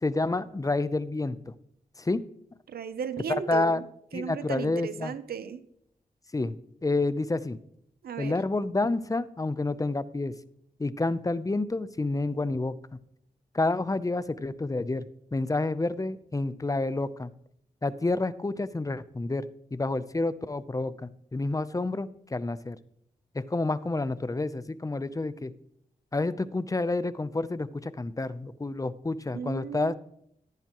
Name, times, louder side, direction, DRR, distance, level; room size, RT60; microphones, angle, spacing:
voice 1, 0.0-1.5 2.0-2.2 3.5-3.8 4.1-5.1 6.3-6.6 6.8-7.6 8.2-10.3 10.8-12.7 13.5-15.1 15.3-17.3 17.8-19.5 19.7-22.8 23.3-25.5 26.1-29.9, left 2 dB, 20° left, 15 dB, 0.6 m, -29 dB
voice 2, 2.7-3.8 4.1-5.6 8.0-8.4 29.3-29.9, right 7 dB, 85° right, 13 dB, 0.7 m, -35 dB
14.0 x 10.5 x 3.0 m, 0.72 s
cardioid pair, 65°, 15 cm